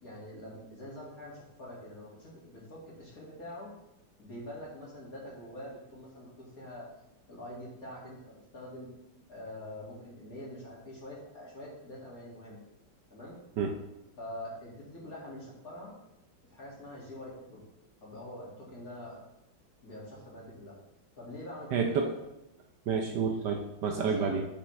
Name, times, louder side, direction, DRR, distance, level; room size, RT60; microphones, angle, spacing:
voice 1, 0.0-3.7 4.2-6.9 7.3-8.9 9.3-12.6 13.1-13.3 14.2-15.9 16.5-17.6 18.0-19.2 19.8-20.8 21.2-22.1 24.0-24.3, left 1 dB, 45° left, -5 dB, 2.5 m, -45 dB
voice 2, 21.7-22.1 22.9-24.5, right 5 dB, 70° right, 3 dB, 1.2 m, -29 dB
8.4 x 5.8 x 3.2 m, 0.88 s
omnidirectional pair, 2.2 m